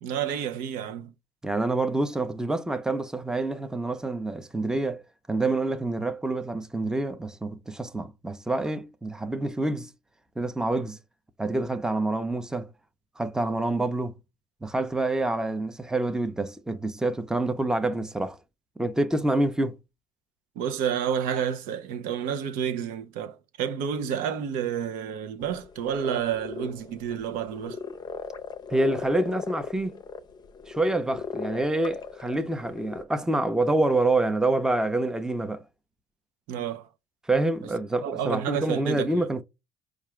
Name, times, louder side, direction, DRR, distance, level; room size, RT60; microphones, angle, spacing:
voice 1, 0.0-1.1 20.6-27.8 36.5-36.9 38.0-39.2, right 8 dB, 75° right, 0.7 m, -30 dB
voice 2, 1.4-5.0 5.3-9.9 10.4-11.0 11.4-12.7 13.2-14.1 14.6-18.4 18.8-19.8 28.7-30.0 30.7-35.6 37.3-39.4, right 2 dB, 5° right, 0.6 m, -27 dB
sound 1, 25.4-33.0, left 5 dB, 30° left, 0.6 m, -38 dB
4.7 x 2.5 x 3.2 m
supercardioid pair, 95°, 14 cm